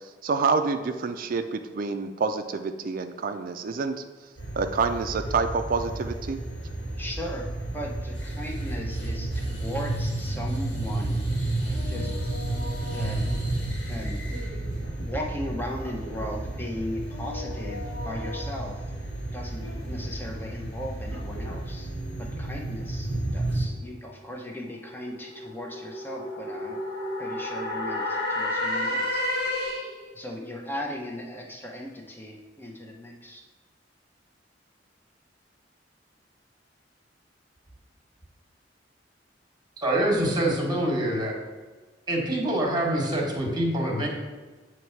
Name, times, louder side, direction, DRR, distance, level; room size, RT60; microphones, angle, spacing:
voice 1, 0.2-4.0 4.6-6.4, right 4 dB, 50° right, 8 dB, 0.4 m, -27 dB
sound 1, 4.4-23.7, right 1 dB, 80° left, 1.9 m, -31 dB
voice 2, 7.0-7.5 7.7-11.2 11.6-12.1 12.9-13.3 13.9-14.2 15.0-18.8 19.3-21.9 22.2-26.8 27.2-29.2 30.1-33.4, left 1 dB, 10° left, 0 dB, 0.7 m, -37 dB
sound 2, 23.9-30.1, left 1 dB, 65° left, 1.4 m, -31 dB
voice 3, 39.8-41.3 42.1-44.1, right 1 dB, 25° right, 0 dB, 1.2 m, -25 dB
7.7 x 3.2 x 4.5 m, 1.3 s
head